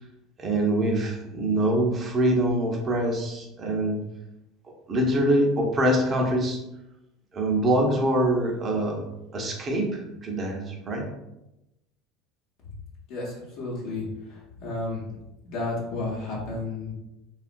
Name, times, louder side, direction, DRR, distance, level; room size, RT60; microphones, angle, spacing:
voice 1, 0.4-4.0 4.9-6.6 7.3-9.0 9.3-11.0, right 1 dB, 35° right, 1 dB, 0.7 m, -24 dB
voice 2, 13.1-15.0 15.4-16.9, left 2 dB, 65° left, -6 dB, 0.8 m, -32 dB
2.8 x 2.4 x 2.5 m, 0.92 s
hypercardioid pair, 75°, 0 cm